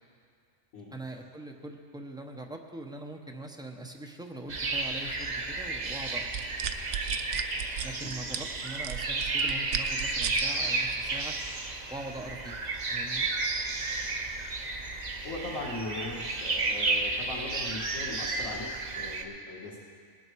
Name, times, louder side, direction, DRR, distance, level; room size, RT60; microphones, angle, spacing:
voice 1, 0.9-6.3 7.8-11.3 11.9-12.6 12.9-13.3, right 1 dB, 5° right, 1 dB, 0.8 m, -42 dB
sound 1, 4.5-19.2, right 3 dB, 40° right, 0.8 m, -32 dB
sound 2, 6.2-10.4 10.9-11.2, right 9 dB, 85° right, 1.0 m, -35 dB
voice 2, 15.2-19.8, left 2 dB, 75° left, -8 dB, 2.1 m, -39 dB
19.5 x 8.8 x 4.7 m, 2.3 s
omnidirectional pair, 1.4 m